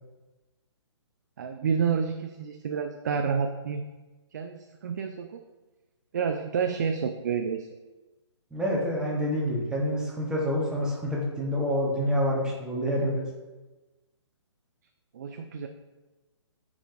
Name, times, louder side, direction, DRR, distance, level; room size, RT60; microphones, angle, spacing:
voice 1, 1.4-3.9 4.3-5.4 6.1-7.7 15.1-15.7, right 6 dB, 40° right, 6 dB, 0.4 m, -29 dB
voice 2, 8.5-13.2, equal, 5° right, -3 dB, 1.1 m, -27 dB
8.7 x 4.8 x 2.5 m, 1.2 s
figure-of-eight pair, 130°, 15 cm